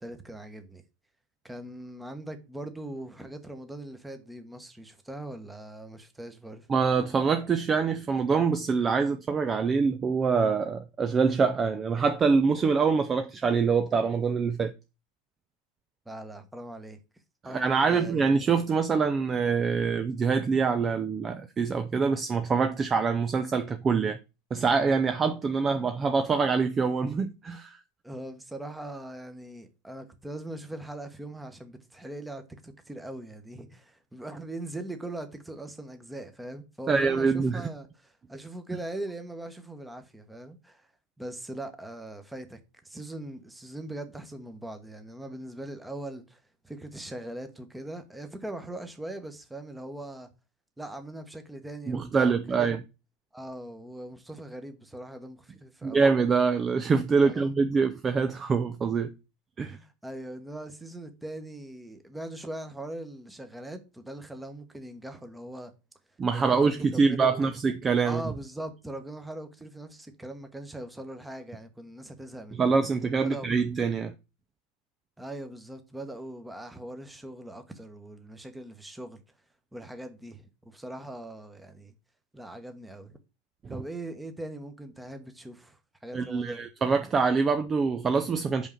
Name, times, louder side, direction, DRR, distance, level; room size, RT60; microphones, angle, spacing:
voice 1, 0.0-0.8 1.4-6.7 16.0-17.0 17.4-18.2 28.0-40.9 41.2-50.3 50.8-52.7 53.3-56.1 57.2-57.5 59.6-65.7 66.3-67.5 68.0-72.7 73.2-73.5 75.2-79.2 79.7-81.9 82.3-83.2 83.7-86.6, right 1 dB, 5° right, 1.2 m, -41 dB
voice 2, 6.7-14.7 17.4-24.2 24.5-27.8 36.9-37.6 51.9-52.8 55.8-59.1 59.6-59.8 66.2-68.2 72.6-74.1 83.6-83.8 86.1-88.7, right 5 dB, 25° right, 0.5 m, -25 dB
5.4 x 4.9 x 6.1 m
figure-of-eight pair, 80°, 0 cm